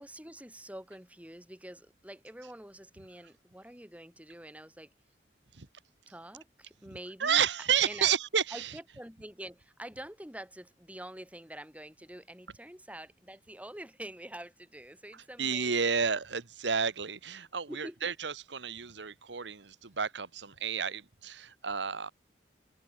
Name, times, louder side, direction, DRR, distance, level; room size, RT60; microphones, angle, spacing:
voice 1, 0.0-4.9 6.1-7.4 7.8-8.1 8.5-16.0 17.7-18.1, right 1 dB, 10° right, 6.6 m, -46 dB
voice 2, 7.2-8.8 15.1-22.1, right 7 dB, 80° right, 1.3 m, -31 dB
head